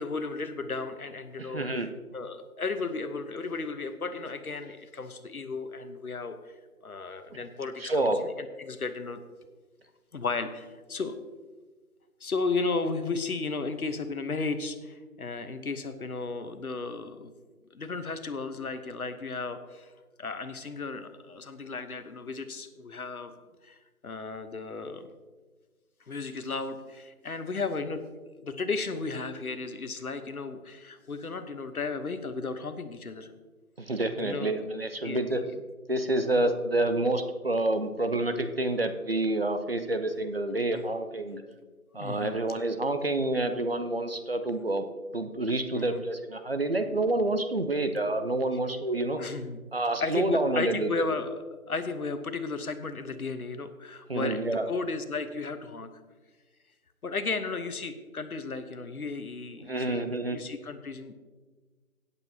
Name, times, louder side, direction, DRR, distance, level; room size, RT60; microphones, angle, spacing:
voice 1, 0.0-1.7 2.1-6.5 6.8-9.2 10.1-11.2 12.2-17.3 17.7-19.9 20.2-23.3 23.6-23.8 24.0-25.1 26.1-28.0 28.3-33.3 34.2-34.6 35.0-35.5 40.7-40.8 41.9-42.4 45.7-46.0 49.2-49.6 50.0-54.4 54.7-55.9 57.0-61.1, left 4 dB, 75° left, 10 dB, 1.1 m, -34 dB
voice 2, 1.4-1.9 7.3-7.4 7.8-8.2 33.8-35.4 35.9-41.4 41.9-44.8 45.1-49.2 49.7-51.0 54.1-54.7 59.6-60.4, right 2 dB, 40° right, 8 dB, 0.7 m, -28 dB
17.0 x 8.3 x 2.8 m, 1.3 s
figure-of-eight pair, 165°, 44 cm